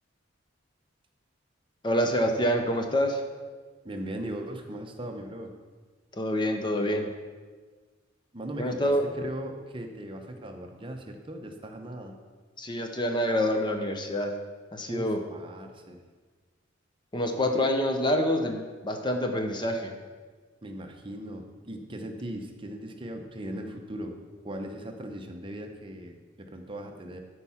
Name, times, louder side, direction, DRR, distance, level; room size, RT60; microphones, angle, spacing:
voice 1, 1.8-3.2 6.1-7.1 8.6-9.1 12.6-14.3 14.7-15.2 17.1-20.0, equal, 25° left, 5 dB, 0.7 m, -27 dB
voice 2, 3.8-5.5 8.3-12.2 14.9-16.0 20.6-24.2 24.4-27.2, right 1 dB, 25° right, 4 dB, 0.8 m, -38 dB
12.5 x 4.7 x 5.7 m, 1.4 s
head